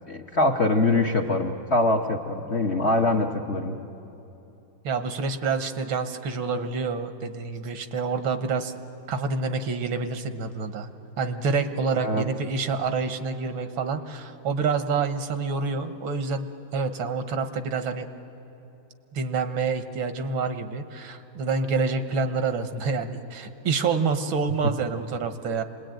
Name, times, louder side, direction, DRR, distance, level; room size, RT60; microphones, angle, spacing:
voice 1, 0.1-3.8 12.0-12.3, left 2 dB, 45° left, 2 dB, 1.0 m, -23 dB
voice 2, 4.8-8.7 9.1-10.9 11.2-18.1 19.1-25.6, right 4 dB, 80° right, 8 dB, 2.0 m, -27 dB
28.0 x 21.0 x 9.1 m, 2.8 s
omnidirectional pair, 2.2 m